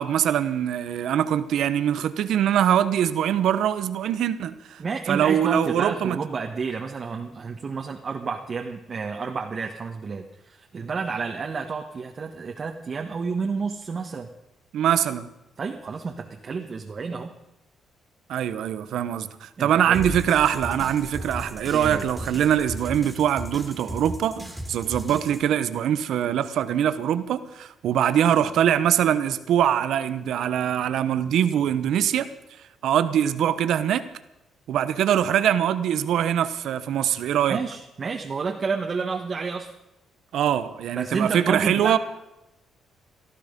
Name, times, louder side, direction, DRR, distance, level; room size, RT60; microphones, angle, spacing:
voice 1, 0.0-4.8 5.1-6.2 14.7-15.3 18.3-32.3 32.8-34.1 34.7-37.6 40.3-42.0, right 10 dB, 75° right, 1.0 m, -23 dB
voice 2, 4.8-14.3 15.6-17.3 19.6-20.1 21.7-22.1 37.5-39.7 40.9-42.0, right 5 dB, 40° right, 1.4 m, -30 dB
sound 1, 19.9-25.4, equal, ahead, 3.0 m, -36 dB
18.5 x 13.5 x 5.3 m
cardioid pair, 90°, 0 cm